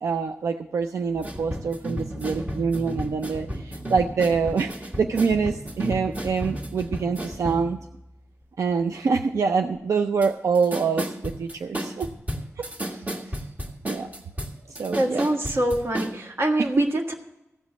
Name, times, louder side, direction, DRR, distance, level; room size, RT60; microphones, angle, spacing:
voice 1, 0.0-7.8 8.6-12.1 12.6-12.7 13.9-14.1 14.7-15.2, right 5 dB, 85° right, 6 dB, 0.5 m, -25 dB
sound 1, 1.1-7.7 10.2-10.3 10.5-16.1, equal, 30° right, 1.7 m, -33 dB
voice 2, 14.9-17.1, right 1 dB, 55° right, 3 dB, 1.5 m, -24 dB
15.0 x 5.2 x 8.4 m, 0.92 s
wide cardioid pair, 90°, 5 cm